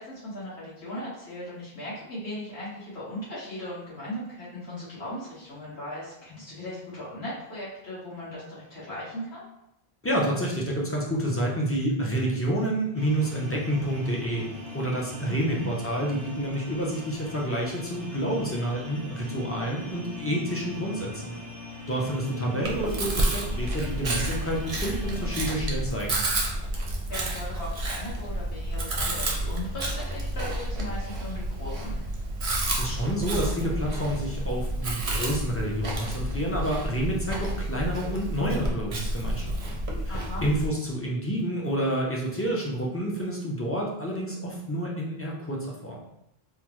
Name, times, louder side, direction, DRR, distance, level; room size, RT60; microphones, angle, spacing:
voice 1, 0.0-9.4 15.3-15.7 27.1-31.9 40.1-40.5, left 1 dB, 80° left, -9 dB, 1.6 m, -38 dB
voice 2, 10.0-21.4 21.9-26.2 32.7-39.8 40.1-46.0, right 1 dB, 25° left, -3 dB, 0.3 m, -29 dB
sound 1, 12.9-25.6, left 3 dB, 60° left, 1.9 m, -41 dB
Chewing mastication, 22.6-40.7, right 1 dB, 40° right, 0.5 m, -30 dB
3.5 x 2.0 x 3.0 m, 0.81 s
omnidirectional pair, 1.0 m